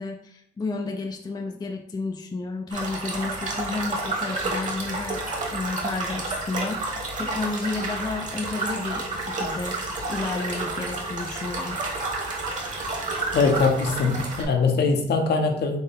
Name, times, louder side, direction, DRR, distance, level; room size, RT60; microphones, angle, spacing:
voice 1, 0.0-11.8, left 3 dB, 20° left, 3 dB, 0.5 m, -32 dB
sound 1, 2.7-14.4, right 2 dB, 40° right, 1.4 m, -30 dB
voice 2, 13.3-15.8, left 4 dB, 55° left, 4 dB, 0.8 m, -22 dB
4.4 x 3.3 x 3.5 m, 0.71 s
cardioid pair, 90°, 20 cm